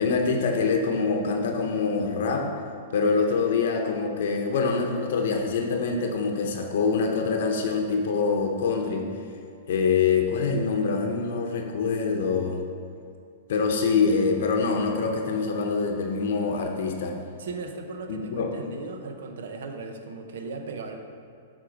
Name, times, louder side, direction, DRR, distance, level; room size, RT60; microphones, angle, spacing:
voice 1, 0.0-2.5 2.9-9.1 9.7-12.6 13.5-17.2 18.1-18.5, left 4 dB, 70° left, 2 dB, 0.7 m, -25 dB
voice 2, 17.4-21.0, right 4 dB, 75° right, 5 dB, 0.8 m, -37 dB
7.8 x 3.7 x 5.0 m, 2.4 s
hypercardioid pair, 140°, 0 cm